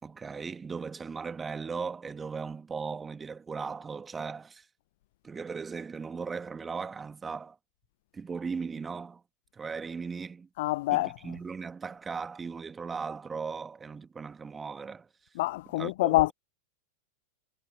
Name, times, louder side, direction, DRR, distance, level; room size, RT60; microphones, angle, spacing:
voice 1, 0.0-4.7 5.2-7.6 8.1-9.2 9.5-10.5 10.9-15.1 15.8-16.3, right 5 dB, 15° right, 2.0 m, -37 dB
voice 2, 10.6-11.1 15.4-16.3, left 19 dB, 50° left, 0.7 m, -26 dB
figure-of-eight pair, 90°, 0 cm